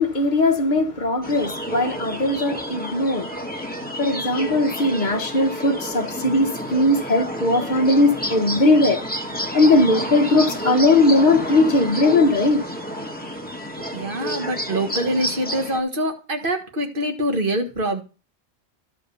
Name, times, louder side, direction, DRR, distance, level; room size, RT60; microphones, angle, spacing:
voice 1, 0.0-3.3 4.0-9.0 9.5-12.6, left 2 dB, 40° left, 1.3 m, -19 dB
sound 1, 1.2-15.8, equal, 10° left, 1.3 m, -30 dB
voice 2, 13.9-18.0, right 1 dB, 45° right, 1.8 m, -25 dB
12.0 x 5.0 x 6.9 m
omnidirectional pair, 1.3 m